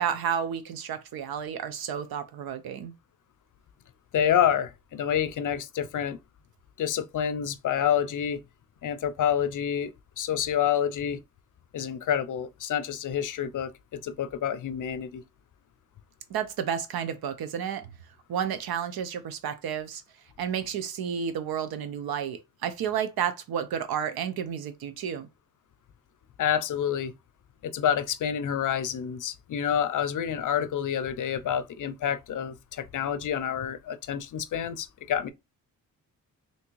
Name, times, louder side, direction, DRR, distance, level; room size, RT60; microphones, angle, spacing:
voice 1, 0.0-2.9 16.3-17.9 18.3-20.0 20.4-25.3, right 8 dB, 80° right, 0.7 m, -31 dB
voice 2, 4.1-6.2 6.8-8.4 8.8-11.2 11.7-15.2 26.4-27.1 27.6-35.3, left 9 dB, 55° left, 0.5 m, -28 dB
3.4 x 2.8 x 3.0 m
cardioid pair, 90°, 36 cm